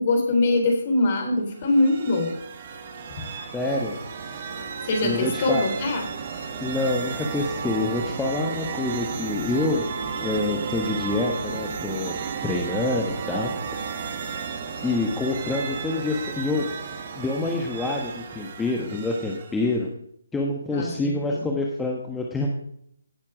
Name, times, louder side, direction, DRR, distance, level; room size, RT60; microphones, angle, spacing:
voice 1, 0.0-2.3 3.1-3.3 4.8-6.1 20.7-21.5, left 2 dB, 35° left, 4 dB, 3.9 m, -23 dB
sound 1, 1.5-19.7, right 6 dB, 40° right, 1.6 m, -33 dB
voice 2, 3.5-4.0 5.0-5.6 6.6-9.9 10.2-12.1 12.4-13.8 14.8-16.7 17.1-19.9 20.3-22.5, left 2 dB, 5° left, -1 dB, 1.3 m, -27 dB
17.0 x 7.5 x 5.0 m, 0.71 s
figure-of-eight pair, 145°, 0 cm